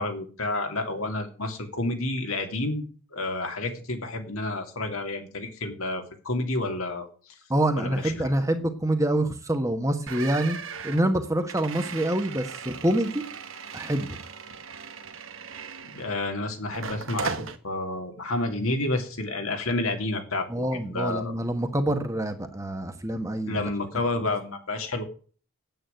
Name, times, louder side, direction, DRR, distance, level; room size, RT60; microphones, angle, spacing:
voice 1, 0.0-7.1 7.8-8.2 15.8-21.3 23.5-25.0, left 2 dB, 70° left, 4 dB, 2.7 m, -30 dB
voice 2, 7.5-10.6 10.8-13.2 13.7-14.2 20.5-23.7, right 1 dB, 15° right, 6 dB, 1.3 m, -26 dB
sound 1, 10.1-16.3 16.7-17.6, right 5 dB, 60° right, 1.3 m, -37 dB
9.2 x 8.9 x 8.9 m, 0.40 s
head